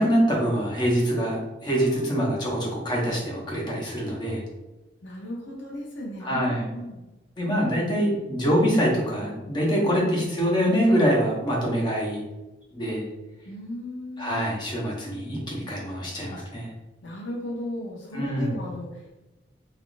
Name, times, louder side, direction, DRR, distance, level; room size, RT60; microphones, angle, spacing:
voice 1, 0.0-4.4 6.2-6.8 7.4-12.2 12.7-13.0 14.2-16.7 18.1-18.5, equal, 25° left, -3 dB, 0.8 m, -24 dB
voice 2, 1.7-2.1 5.0-7.0 9.8-10.0 13.4-14.5 17.0-19.1, left 1 dB, 85° left, -3 dB, 0.7 m, -36 dB
3.4 x 2.4 x 2.5 m, 1.1 s
head